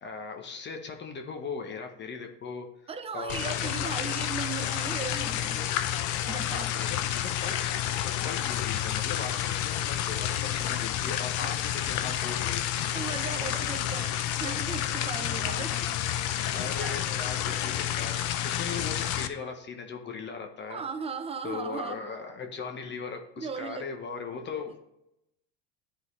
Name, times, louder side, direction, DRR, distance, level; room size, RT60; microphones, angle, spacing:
voice 1, 0.0-2.7 3.1-4.3 6.4-7.6 7.9-12.6 15.4-15.7 16.5-20.8 21.4-24.8, left 5 dB, 30° left, 1.0 m, -39 dB
voice 2, 2.9-5.7 6.3-6.8 12.9-15.9 16.4-17.0 20.7-22.0 23.4-23.8, right 5 dB, 15° right, 0.6 m, -37 dB
sound 1, 3.3-19.3, left 11 dB, 50° left, 0.7 m, -30 dB
11.0 x 4.0 x 3.2 m
supercardioid pair, 105°, 37 cm